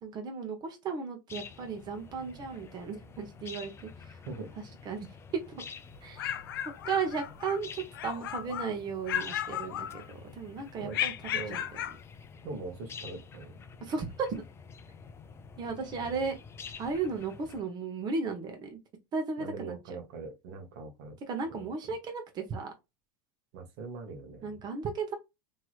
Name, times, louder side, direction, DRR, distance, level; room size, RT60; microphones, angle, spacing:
voice 1, 0.0-4.2 4.8-5.6 6.0-11.6 13.8-14.4 15.6-16.4 16.8-18.8 19.1-20.0 21.3-22.7 24.4-25.1, right 5 dB, 35° right, 0.9 m, -35 dB
sound 1, 1.3-17.6, left 5 dB, 20° left, 0.4 m, -49 dB
sound 2, 5.9-7.6 7.9-8.7 9.1-10.3 10.9-12.0, left 11 dB, 85° left, 0.4 m, -35 dB
voice 2, 12.4-13.6 16.0-16.2 19.4-21.2 21.5-21.6 23.5-24.5, right 3 dB, 65° right, 1.0 m, -42 dB
3.2 x 2.8 x 2.3 m
hypercardioid pair, 105°, 11 cm